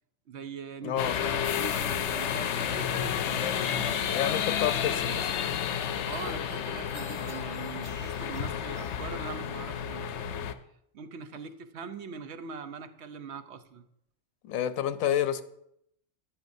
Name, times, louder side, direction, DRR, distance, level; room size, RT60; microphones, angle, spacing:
voice 1, 0.3-4.2 6.0-10.5 10.9-13.9, right 5 dB, 60° right, 0.9 m, -42 dB
voice 2, 0.8-1.2 4.1-5.3 14.5-15.4, left 10 dB, 85° left, 1.1 m, -29 dB
sound 1, 1.0-10.5, left 8 dB, 65° left, 0.8 m, -31 dB
sound 2, 5.6-9.3 9.7-10.4, right 2 dB, 90° right, 2.4 m, -53 dB
13.5 x 11.5 x 2.7 m
omnidirectional pair, 1.4 m